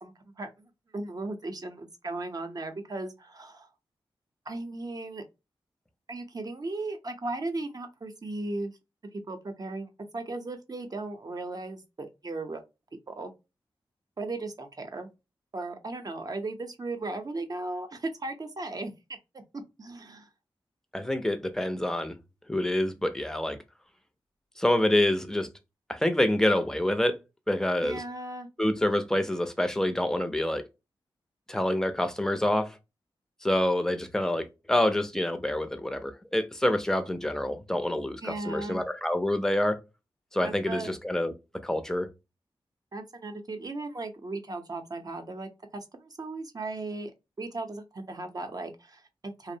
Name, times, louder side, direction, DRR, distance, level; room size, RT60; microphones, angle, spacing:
voice 1, 0.0-3.7 4.5-5.2 6.1-8.7 9.1-12.6 13.1-13.3 14.2-15.1 15.5-18.9 19.8-20.3 27.8-28.5 38.2-38.8 40.4-40.9 42.9-47.1 47.4-49.6, right 2 dB, 40° right, 0.6 m, -36 dB
voice 2, 20.9-22.2 22.5-23.6 24.6-25.5 25.9-27.2 27.5-28.0 28.6-30.6 31.5-32.8 33.4-39.8 40.3-41.3 41.6-42.1, left 1 dB, 5° left, 0.5 m, -27 dB
2.6 x 2.0 x 2.6 m
cardioid pair, 60°, 9 cm